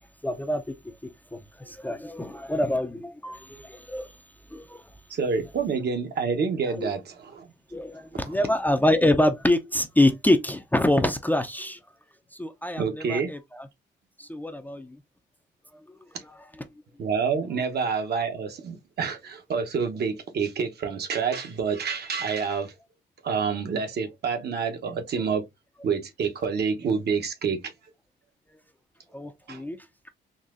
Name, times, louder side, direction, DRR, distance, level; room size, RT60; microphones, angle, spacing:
voice 1, 0.2-0.8 1.0-4.1 4.5-4.8 6.8-6.9 7.7-11.8 12.3-13.7 14.2-15.0 16.2-16.6 29.1-29.8, left 1 dB, 10° left, 0.5 m, -26 dB
voice 2, 5.1-7.5 12.8-13.3 17.0-22.7 23.2-25.4 25.8-27.7 29.5-29.6, right 5 dB, 55° right, 0.9 m, -28 dB
4.0 x 2.6 x 2.5 m
cardioid pair, 90°, 20 cm